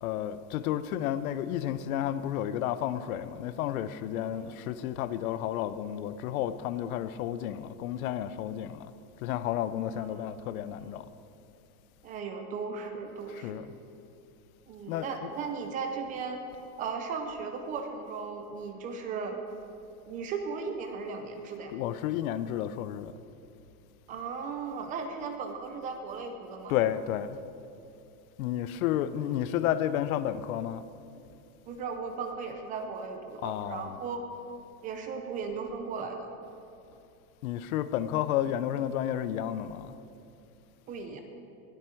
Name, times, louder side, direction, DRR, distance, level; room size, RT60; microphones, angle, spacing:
voice 1, 0.0-8.9 9.2-11.1 13.3-13.8 14.9-15.3 21.7-23.1 26.7-27.4 28.4-30.8 33.4-34.0 37.4-40.0, left 11 dB, 70° left, 0.7 m, -31 dB
voice 2, 9.9-10.7 12.0-13.7 14.7-16.4 16.8-19.4 20.1-21.8 24.1-26.8 31.7-34.2 34.8-36.3 40.9-41.2, right 5 dB, 20° right, 0.5 m, -37 dB
20.0 x 8.1 x 4.5 m
supercardioid pair, 170°, 44 cm